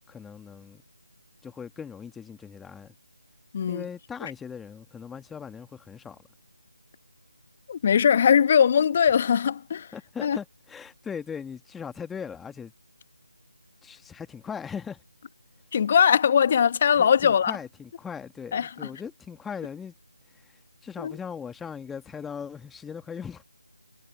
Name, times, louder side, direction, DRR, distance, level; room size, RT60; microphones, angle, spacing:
voice 1, 0.1-0.8 1.4-2.9 3.7-6.2 9.9-12.7 13.8-15.0 17.0-19.9 20.4-23.4, left 6 dB, 5° left, 1.6 m, -39 dB
voice 2, 3.5-3.9 4.2-4.3 7.7-9.9 10.2-10.4 15.7-17.6 18.5-18.9 21.0-21.1, left 7 dB, 30° left, 1.3 m, -21 dB
figure-of-eight pair, 160°, 0 cm